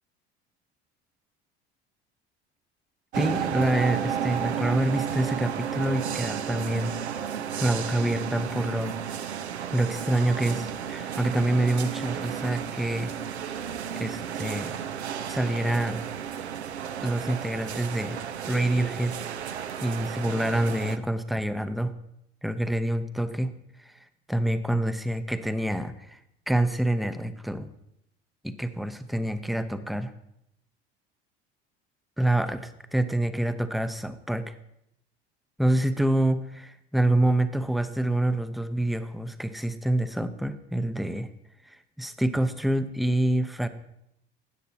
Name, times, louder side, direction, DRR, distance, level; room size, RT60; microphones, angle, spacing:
voice 1, 3.1-6.9 7.6-9.0 9.7-13.1 13.9-14.8 15.3-16.0 17.0-18.2 18.5-19.2 19.8-21.9 22.4-23.5 23.8-23.9 24.3-26.2 26.5-27.7 28.4-30.1 32.2-34.5 35.6-41.3 41.6-43.7, right 1 dB, ahead, 11 dB, 0.6 m, -27 dB
sound 1, 3.1-21.0, right 8 dB, 85° right, 0.6 m, -33 dB
13.5 x 9.2 x 2.8 m, 0.79 s
figure-of-eight pair, 65°, 32 cm